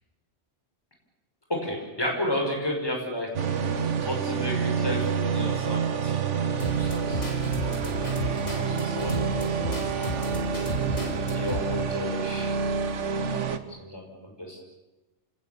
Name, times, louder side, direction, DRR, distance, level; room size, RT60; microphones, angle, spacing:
voice 1, 1.5-3.3 4.0-10.1 11.3-12.6 13.3-14.6, left 1 dB, 20° left, 0 dB, 5.4 m, -33 dB
sound 1, 3.4-13.6, right 6 dB, 90° right, 1.5 m, -28 dB
sound 2, 6.6-11.6, left 1 dB, 60° left, 4.3 m, -33 dB
28.5 x 19.0 x 6.9 m, 1.1 s
omnidirectional pair, 1.2 m